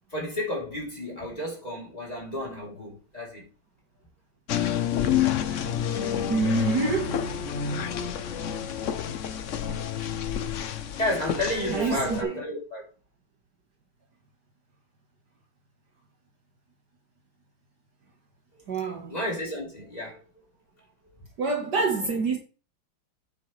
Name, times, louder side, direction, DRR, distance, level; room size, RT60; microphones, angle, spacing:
voice 1, 0.1-3.5 11.0-12.8 19.1-20.2, left 1 dB, 20° left, 3.5 m, -31 dB
sound 1, 4.5-12.2, left 9 dB, 85° left, 0.6 m, -29 dB
voice 2, 6.3-7.2 11.7-12.3 18.7-19.1 21.4-22.4, right 4 dB, 55° right, 1.9 m, -26 dB
8.9 x 7.8 x 3.3 m
omnidirectional pair, 2.3 m